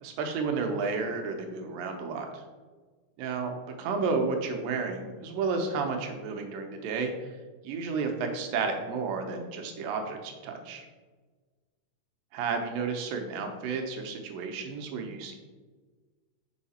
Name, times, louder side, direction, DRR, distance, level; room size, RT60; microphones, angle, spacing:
voice 1, 0.0-2.4 3.2-3.5 3.8-7.1 7.6-10.8 12.3-15.4, right 4 dB, 85° right, 4 dB, 2.6 m, -32 dB
5.7 x 5.6 x 4.2 m, 1.4 s
omnidirectional pair, 3.9 m